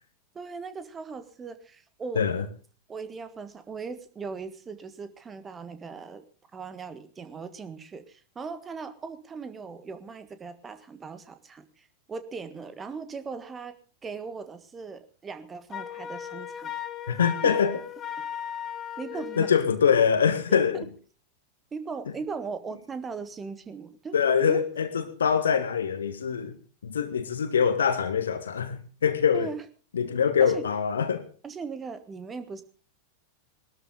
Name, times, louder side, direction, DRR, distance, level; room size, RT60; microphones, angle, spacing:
voice 1, 0.3-2.2 2.9-6.2 6.5-13.7 14.0-16.7 17.4-17.5 19.0-19.5 20.5-20.9 21.7-24.1 24.5-24.6 29.3-29.7 30.4-30.7 31.4-32.6, right 5 dB, 20° right, 1.6 m, -38 dB
Wind instrument woodwind instrument, 15.7-19.6, left 9 dB, 25° left, 1.1 m, -36 dB
voice 2, 17.1-17.7 19.4-20.9 24.1-26.5 26.8-29.5 29.9-31.2, left 7 dB, 70° left, 1.7 m, -24 dB
20.5 x 13.0 x 3.8 m
figure-of-eight pair, 90°, 0 cm